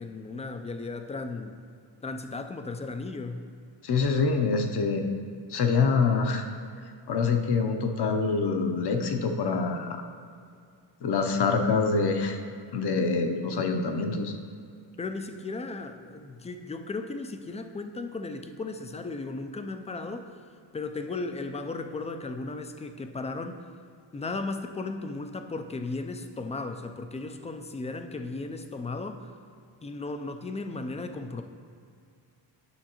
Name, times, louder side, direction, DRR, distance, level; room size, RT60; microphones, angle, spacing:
voice 1, 0.0-1.6 2.0-3.5 15.0-20.4 20.7-23.6 24.1-29.3 29.8-31.4, left 3 dB, 15° left, 7 dB, 0.3 m, -35 dB
voice 2, 3.8-5.1 5.5-6.5 7.1-10.0 11.0-12.4 12.7-14.3, left 4 dB, 55° left, 5 dB, 0.8 m, -25 dB
9.9 x 5.8 x 3.0 m, 2.3 s
cardioid pair, 100°, 47 cm